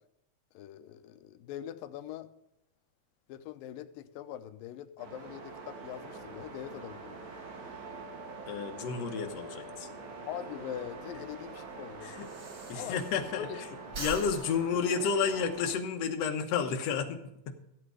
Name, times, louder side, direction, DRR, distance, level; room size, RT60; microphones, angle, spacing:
voice 1, 0.5-2.3 3.3-7.3 10.3-12.1 12.7-13.0 13.3-13.6 13.9-14.0 14.5-14.6, left 11 dB, 85° left, 11 dB, 2.5 m, -42 dB
sound 1, 5.0-15.7, right 3 dB, 55° right, 3.0 m, -45 dB
voice 2, 8.5-9.9 12.0-12.3 12.7-13.5 14.0-17.2 17.5-17.6, left 6 dB, 60° left, 6 dB, 2.0 m, -31 dB
Breathing, 10.8-13.5 13.8-15.8, right 3 dB, 75° right, 0.6 m, -44 dB
14.0 x 8.8 x 4.9 m, 0.85 s
omnidirectional pair, 3.9 m